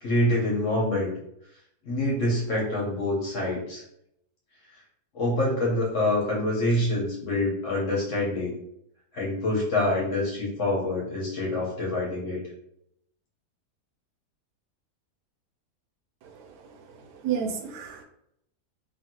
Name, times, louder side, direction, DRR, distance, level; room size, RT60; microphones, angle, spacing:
voice 1, 0.0-1.1 1.8-3.8 5.1-8.6 9.1-12.4, left 1 dB, 55° left, -5 dB, 1.2 m, -26 dB
voice 2, 16.2-18.0, right 7 dB, 80° right, 4 dB, 1.2 m, -33 dB
2.8 x 2.7 x 2.8 m, 0.76 s
omnidirectional pair, 1.7 m